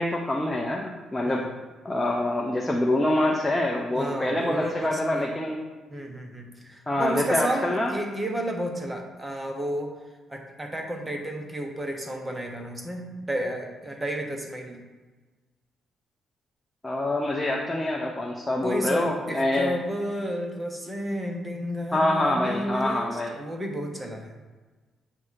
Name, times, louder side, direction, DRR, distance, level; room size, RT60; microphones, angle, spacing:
voice 1, 0.0-1.4 1.8-5.6 6.9-7.9 16.8-19.7 21.9-23.3, left 1 dB, 15° left, -1 dB, 0.8 m, -25 dB
voice 2, 3.9-5.3 5.9-9.9 10.3-14.8 18.6-24.3, equal, 15° right, 2 dB, 1.2 m, -32 dB
7.8 x 3.1 x 5.7 m, 1.3 s
cardioid pair, 90°, 0 cm